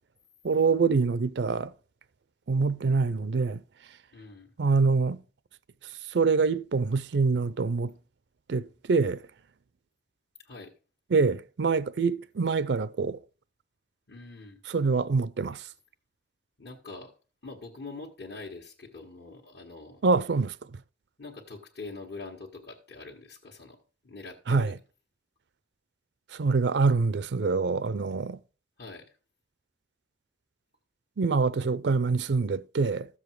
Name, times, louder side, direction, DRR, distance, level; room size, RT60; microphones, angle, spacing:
voice 1, 0.4-1.7 2.5-3.6 4.6-5.2 6.1-7.9 8.5-9.2 11.1-13.2 14.7-15.6 20.0-20.5 24.5-24.7 26.3-28.4 31.2-33.1, right 4 dB, 70° right, 0.5 m, -25 dB
voice 2, 4.1-4.6 10.4-10.7 14.1-14.6 16.6-17.1 17.4-20.0 21.2-23.8 24.0-24.8 28.8-29.2, left 3 dB, 60° left, 1.6 m, -44 dB
13.5 x 7.2 x 4.7 m
head